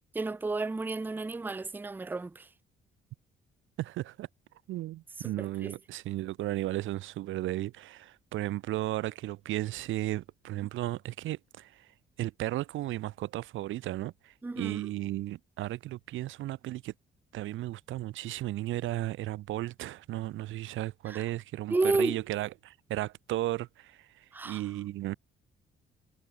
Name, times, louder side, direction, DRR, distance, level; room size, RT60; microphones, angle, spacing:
voice 1, 0.1-2.5 5.2-5.7 14.4-14.8 21.1-21.2 21.7-22.2 24.3-24.6, right 3 dB, 10° right, 0.4 m, -32 dB
voice 2, 3.8-4.3 4.7-11.9 12.2-16.9 17.3-24.1 24.4-25.2, right 15 dB, 75° right, 0.6 m, -35 dB
cardioid pair, 90°, 20 cm